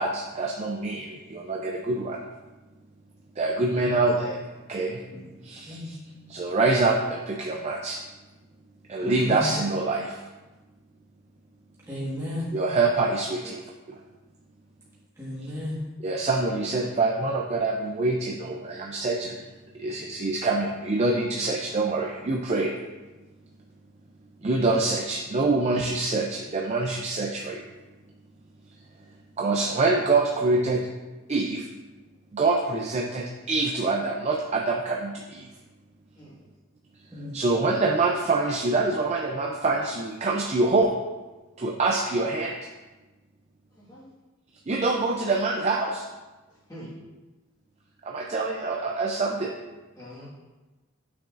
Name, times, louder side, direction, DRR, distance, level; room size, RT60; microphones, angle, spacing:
voice 1, 0.0-2.2 3.4-4.4 4.7-5.0 5.4-5.8 6.3-8.0 8.9-10.2 12.5-13.6 13.9-14.0 16.0-19.4 19.8-22.7 24.4-27.7 29.4-30.9 31.3-31.7 32.3-35.5 37.3-40.9 41.6-42.5 44.7-46.1 48.0-49.5, right 3 dB, 30° right, 0 dB, 0.4 m, -25 dB
voice 2, 3.7-4.1 5.1-5.3 5.5-5.9 9.0-9.6 9.9-10.0 11.9-12.5 15.2-15.8 37.1-37.3, left 1 dB, 15° right, -8 dB, 1.3 m, -34 dB
voice 3, 43.7-44.1 46.5-47.0 49.9-50.3, equal, 15° left, -10 dB, 1.6 m, -45 dB
8.4 x 6.0 x 2.5 m, 1.2 s
head